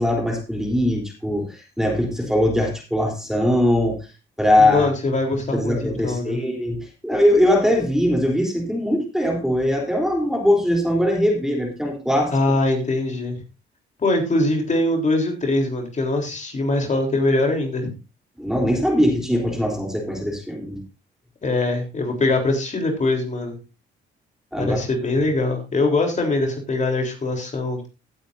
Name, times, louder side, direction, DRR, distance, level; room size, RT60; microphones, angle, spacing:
voice 1, 0.0-4.0 4.4-4.9 5.5-12.3 18.4-20.8 24.5-24.8, left 1 dB, ahead, 1 dB, 3.5 m, -21 dB
voice 2, 4.6-6.4 12.3-13.4 14.0-17.9 21.4-23.6 24.6-27.9, left 2 dB, 40° left, 3 dB, 3.6 m, -22 dB
17.5 x 8.8 x 2.7 m, 0.29 s
cardioid pair, 90°, 20 cm